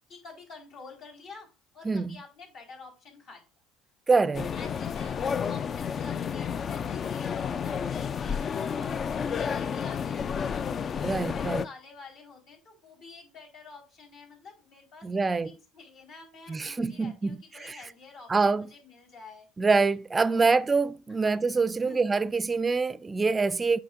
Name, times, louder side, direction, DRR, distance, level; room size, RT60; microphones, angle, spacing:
voice 1, 0.1-1.5 1.7-3.4 4.1-10.7 11.1-19.5 20.2-20.6 21.1-21.4 21.8-22.3, left 4 dB, 70° left, 4.4 m, -49 dB
voice 2, 4.1-4.5 11.0-11.6 15.0-15.6 16.5-17.4 17.6-17.8 18.3-18.7 19.6-23.8, right 4 dB, 25° right, 0.4 m, -25 dB
sound 1, 4.3-11.7, left 7 dB, 40° left, 0.3 m, -31 dB
8.9 x 6.0 x 2.5 m
hypercardioid pair, 75°, 0 cm